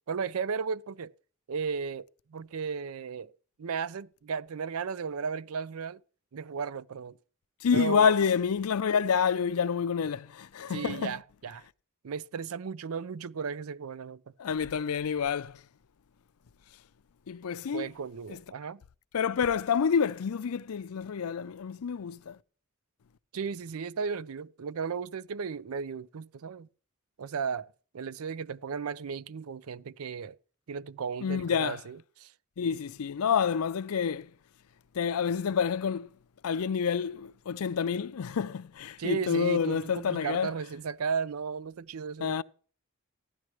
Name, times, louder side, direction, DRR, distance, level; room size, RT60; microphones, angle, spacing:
voice 1, 0.1-1.1 1.5-3.3 3.6-6.0 6.3-7.2 7.7-8.1 10.7-11.6 12.0-14.2 17.7-18.8 23.3-26.7 27.2-30.4 30.7-32.3 39.0-42.4, right 6 dB, 80° right, 0.5 m, -35 dB
voice 2, 7.6-11.2 14.4-15.6 17.3-17.9 18.3-18.4 19.1-22.4 31.2-31.8 32.6-34.3 34.9-36.1 36.4-40.5 42.2-42.4, left 6 dB, 90° left, 0.5 m, -28 dB
15.0 x 11.0 x 3.1 m
head